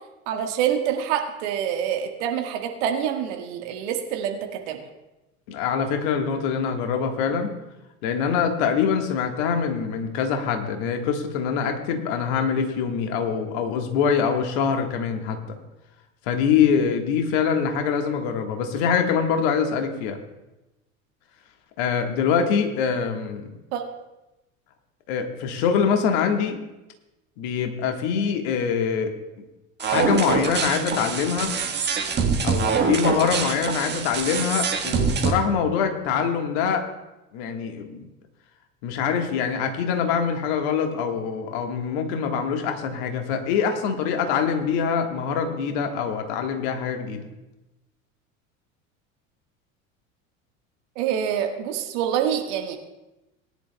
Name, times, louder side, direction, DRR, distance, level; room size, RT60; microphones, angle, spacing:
voice 1, 0.3-4.8 23.7-23.8 50.9-52.8, right 9 dB, 55° right, 4 dB, 1.7 m, -26 dB
voice 2, 5.5-7.5 8.0-15.4 16.3-20.2 21.8-23.5 25.1-26.6 27.4-29.1 29.8-31.5 32.4-36.8 37.3-38.1 38.8-47.2, left 6 dB, 55° left, 5 dB, 1.6 m, -24 dB
sound 1, 29.8-35.3, right 5 dB, 25° right, 1.5 m, -24 dB
20.0 x 10.5 x 2.3 m, 1.0 s
figure-of-eight pair, 75°, 40 cm